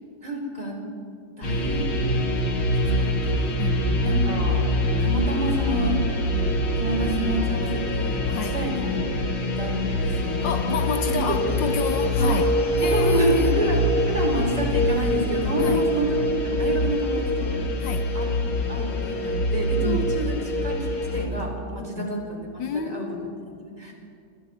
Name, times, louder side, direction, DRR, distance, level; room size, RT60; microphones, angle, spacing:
voice 1, 0.2-0.8 1.4-1.9 2.7-3.7 4.0-4.7 5.0-6.0 6.8-9.0 9.6-10.6 11.0-11.6 12.2-12.4 12.8-17.5 18.1-18.3 18.7-20.8 21.1-22.5 22.7-23.0 23.6-23.9, right 1 dB, 15° right, -1 dB, 4.6 m, -28 dB
sound 1, 1.4-21.3, left 1 dB, 85° left, 3.3 m, -24 dB
voice 2, 3.6-4.0 8.3-8.5 10.4-12.5 12.8-13.6 15.6-15.9 17.8-18.1 19.8-20.2 21.9-22.1 22.6-23.5, left 7 dB, 70° left, 8 dB, 1.6 m, -30 dB
30.0 x 26.5 x 4.4 m, 2.4 s
omnidirectional pair, 2.2 m